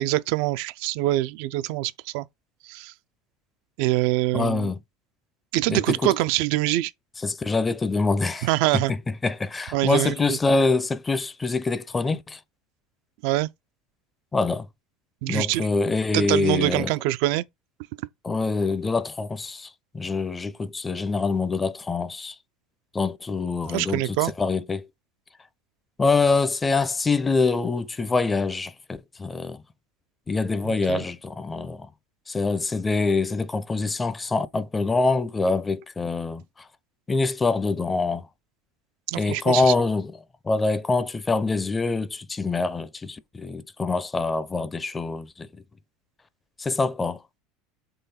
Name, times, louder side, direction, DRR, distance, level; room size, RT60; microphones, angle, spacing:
voice 1, 0.0-2.3 2.6-2.9 3.8-4.7 5.5-6.9 8.4-8.9 9.7-10.4 13.2-13.5 15.2-15.7 16.1-17.4 23.7-24.3 30.6-31.0 39.1-39.7, right 17 dB, 70° right, 0.3 m, -24 dB
voice 2, 4.3-4.8 5.7-6.1 7.2-8.5 8.9-12.4 14.3-14.7 15.3-16.9 18.2-19.7 19.9-22.3 22.9-24.8 26.0-29.6 30.3-31.9 32.3-36.4 37.1-38.2 39.2-40.1 40.4-45.5 46.6-47.2, left 3 dB, 15° left, 0.5 m, -25 dB
3.8 x 3.1 x 4.2 m
supercardioid pair, 105°, 0 cm